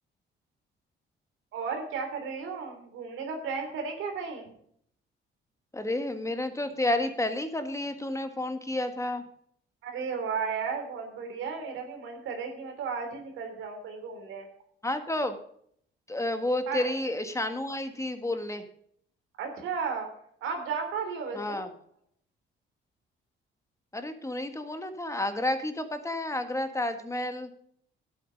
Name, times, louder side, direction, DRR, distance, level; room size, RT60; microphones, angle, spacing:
voice 1, 1.5-4.5 9.8-14.5 16.7-16.9 19.4-20.1 20.4-21.6, right 5 dB, 85° right, 4 dB, 3.2 m, -34 dB
voice 2, 5.7-9.2 14.8-15.4 16.1-18.6 21.3-21.7 23.9-27.5, left 1 dB, 15° left, 7 dB, 1.6 m, -30 dB
11.0 x 8.9 x 5.1 m, 0.64 s
cardioid pair, 90°, 20 cm